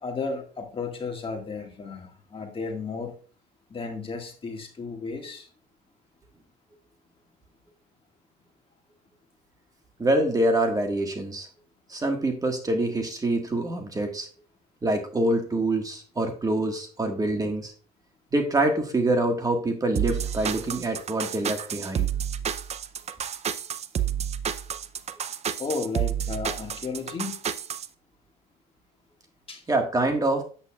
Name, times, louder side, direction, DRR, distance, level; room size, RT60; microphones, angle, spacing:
voice 1, 0.0-3.2 3.7-5.5 25.6-27.3 29.5-29.6, left 4 dB, 30° left, 1.7 m, -33 dB
voice 2, 10.0-11.5 11.9-14.3 14.8-17.7 18.3-22.1 29.7-30.4, right 1 dB, 20° right, 1.5 m, -25 dB
sound 1, 20.0-27.9, right 9 dB, 40° right, 0.5 m, -30 dB
8.4 x 8.0 x 2.3 m
cardioid pair, 110°, 17 cm